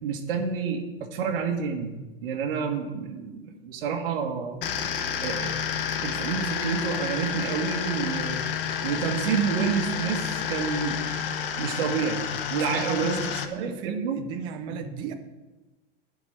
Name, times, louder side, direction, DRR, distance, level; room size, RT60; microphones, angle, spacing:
voice 1, 0.0-2.0 2.2-4.6 5.2-5.7 6.0-8.4 8.8-11.0 11.6-12.2 12.5-13.2 13.5-14.2 14.7-14.9, right 6 dB, 60° right, 3 dB, 1.7 m, -29 dB
sound 1, 4.6-13.4, left 7 dB, 60° left, 1.1 m, -30 dB
voice 2, 12.7-15.1, right 5 dB, 15° right, 7 dB, 0.4 m, -35 dB
11.0 x 5.4 x 7.9 m, 1.1 s
supercardioid pair, 175°, 30 cm